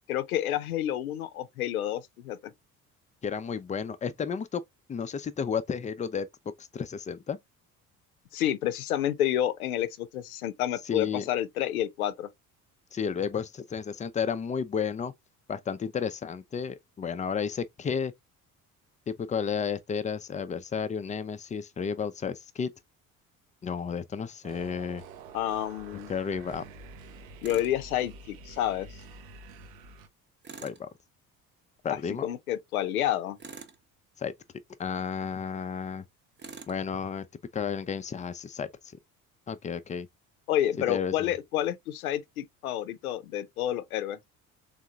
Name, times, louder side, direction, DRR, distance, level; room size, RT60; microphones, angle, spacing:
voice 1, 0.1-2.4 8.3-12.3 25.3-26.1 27.4-28.9 31.9-33.4 40.5-44.2, left 12 dB, 80° left, 0.7 m, -29 dB
voice 2, 3.2-4.6 4.9-6.3 6.6-7.4 10.9-11.3 12.9-15.1 15.5-18.1 19.1-22.7 23.6-25.0 26.1-26.6 30.6-30.9 31.8-32.3 34.2-34.3 34.8-36.0 36.7-37.2 37.5-38.7 39.5-40.1 40.9-41.1, left 6 dB, 15° left, 0.5 m, -32 dB
sound 1, 24.4-30.1, right 4 dB, 70° right, 0.8 m, -47 dB
Tools, 27.4-27.8 30.4-30.8 33.4-33.8 36.4-36.8, right 5 dB, 25° right, 0.8 m, -45 dB
3.7 x 3.5 x 2.3 m
figure-of-eight pair, 55°, 43 cm